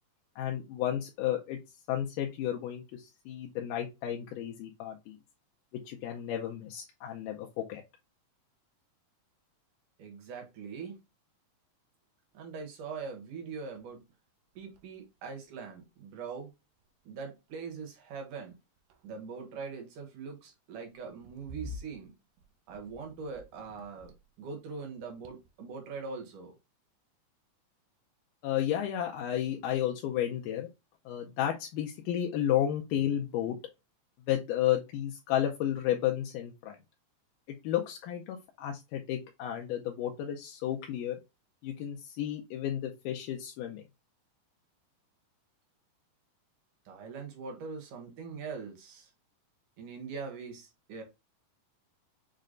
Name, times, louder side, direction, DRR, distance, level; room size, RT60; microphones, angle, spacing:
voice 1, 0.4-1.6 1.9-5.2 5.9-7.8 28.4-30.7 31.1-33.6 34.3-36.8 37.5-41.2 41.6-43.8, left 11 dB, 80° left, 2.0 m, -32 dB
voice 2, 10.0-11.0 12.3-14.0 14.6-16.5 17.0-18.5 19.0-22.1 22.7-24.1 24.4-26.6 46.9-49.1 49.8-51.0, right 5 dB, 65° right, 2.5 m, -42 dB
sound 1, 13.7-14.0 14.3-16.0 16.8-17.2 17.5-17.8 18.5-19.5 20.9-24.5 24.8-25.8, left 1 dB, 85° right, 1.9 m, -50 dB
6.5 x 2.2 x 3.7 m
omnidirectional pair, 4.3 m